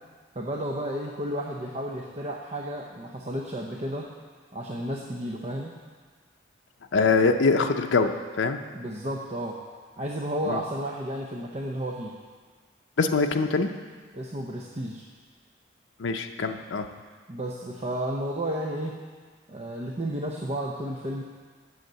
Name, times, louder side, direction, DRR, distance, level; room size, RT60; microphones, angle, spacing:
voice 1, 0.3-4.1 4.5-5.7 8.7-9.6 10.0-12.1 14.1-15.1 17.3-19.0 19.5-21.2, right 1 dB, 35° right, -1 dB, 0.7 m, -32 dB
voice 2, 6.9-8.6 10.4-10.6 13.0-13.7 16.0-16.9, left 4 dB, 80° left, 5 dB, 0.5 m, -23 dB
8.1 x 6.5 x 7.4 m, 1.5 s
head